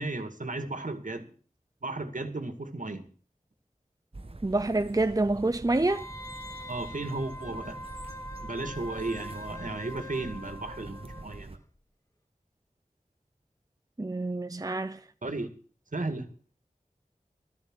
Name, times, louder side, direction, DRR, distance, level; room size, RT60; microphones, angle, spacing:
voice 1, 0.0-1.3 1.8-3.1 6.7-7.9 8.4-11.6 15.2-15.5 15.9-16.3, right 2 dB, 70° right, 2.2 m, -35 dB
sound 1, 4.1-11.6, right 2 dB, 45° right, 1.1 m, -45 dB
voice 2, 4.4-6.1 14.0-15.0, right 2 dB, 25° right, 0.7 m, -27 dB
Wind instrument woodwind instrument, 5.9-11.4 11.7-11.8, left 1 dB, 20° left, 1.8 m, -43 dB
13.5 x 13.0 x 6.3 m
wide cardioid pair, 45°, 14 cm